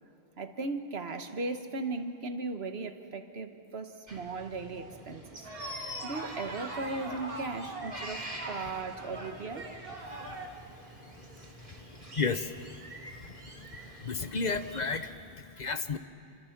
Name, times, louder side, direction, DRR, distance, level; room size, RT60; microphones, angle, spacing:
voice 1, 0.4-5.4 5.7-9.7, right 3 dB, 80° right, 7 dB, 1.5 m, -37 dB
sound 1, 4.1-15.1, right 1 dB, 45° right, 3.2 m, -46 dB
sound 2, 5.4-10.5, right 2 dB, 65° right, 2.3 m, -42 dB
voice 2, 12.1-12.8 14.0-16.0, left 4 dB, 45° left, 10 dB, 0.9 m, -32 dB
28.0 x 25.0 x 6.0 m, 2.7 s
omnidirectional pair, 1.0 m